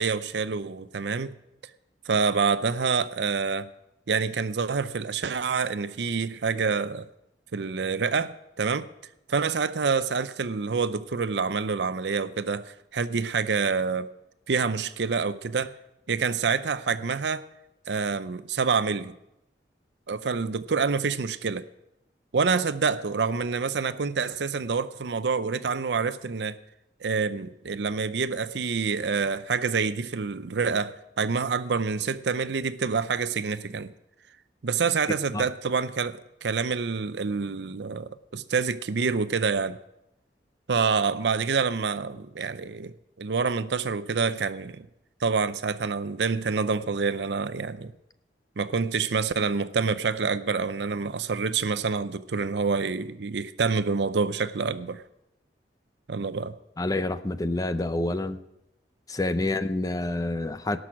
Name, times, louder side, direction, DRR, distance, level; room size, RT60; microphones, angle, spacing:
voice 1, 0.0-1.4 2.1-3.7 4.1-7.1 7.5-8.9 9.3-14.1 14.5-15.7 16.1-17.5 17.9-19.1 20.1-21.6 22.3-26.6 27.0-33.9 34.6-39.8 40.7-44.9 45.2-47.9 48.6-55.0 56.1-56.5, right 5 dB, 75° right, 0.6 m, -27 dB
voice 2, 56.8-58.4 59.1-60.8, left 2 dB, 20° left, 0.5 m, -28 dB
18.0 x 6.2 x 6.0 m
head